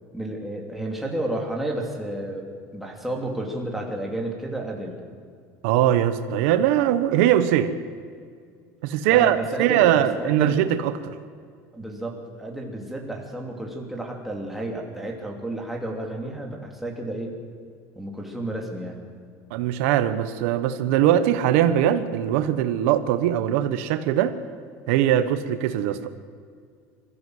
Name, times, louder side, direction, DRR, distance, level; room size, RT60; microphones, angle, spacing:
voice 1, 0.1-5.0 9.1-10.6 11.7-12.1 12.4-17.3 18.0-19.0, right 1 dB, ahead, -1 dB, 2.9 m, -31 dB
voice 2, 5.6-7.7 8.8-11.2 19.5-24.4 24.9-26.1, right 11 dB, 85° right, 10 dB, 1.2 m, -21 dB
24.5 x 14.0 x 8.0 m, 2.2 s
cardioid pair, 160°, 7 cm